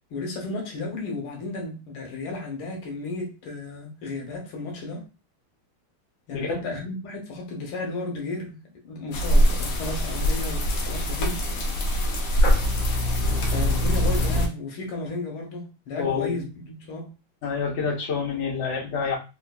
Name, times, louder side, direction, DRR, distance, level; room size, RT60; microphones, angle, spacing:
voice 1, 0.1-5.1 6.3-8.6 8.8-11.5 13.5-17.1, left 2 dB, 85° left, 1.8 m, -33 dB
voice 2, 6.3-6.6 16.0-16.4 17.4-19.2, left 5 dB, 45° left, 1.0 m, -27 dB
sound 1, 9.1-14.5, equal, 65° left, 1.4 m, -23 dB
3.8 x 2.8 x 2.2 m
omnidirectional pair, 2.2 m